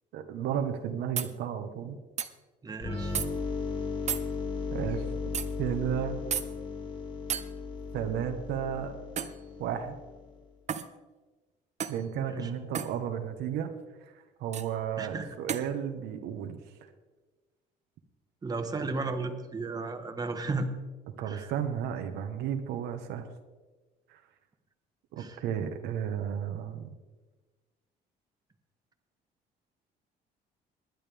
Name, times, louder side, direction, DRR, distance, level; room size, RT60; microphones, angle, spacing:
voice 1, 0.1-2.0 4.7-5.0 5.6-6.2 7.9-8.9 9.6-10.0 11.9-13.7 14.4-16.6 21.2-23.3 24.1-24.2 25.1-26.9, right 9 dB, 85° right, 6 dB, 1.3 m, -33 dB
sound 1, 1.2-1.3 2.2-2.3 3.1-3.3 4.1-4.3 5.3-5.5 6.3-6.5 7.3-7.5 9.2-9.4 10.7-10.9 11.8-12.0 12.7-12.9 14.5-14.7 15.5-15.7, right 8 dB, 45° right, 0.8 m, -32 dB
voice 2, 2.6-3.1 12.2-12.5 15.0-15.3 18.4-20.7 21.2-21.5 25.2-25.4, right 3 dB, 20° right, 5 dB, 1.4 m, -34 dB
sound 2, 2.8-10.4, left 4 dB, 30° left, 3.0 m, -36 dB
20.0 x 11.0 x 3.5 m, 1.3 s
cardioid pair, 110°, 17 cm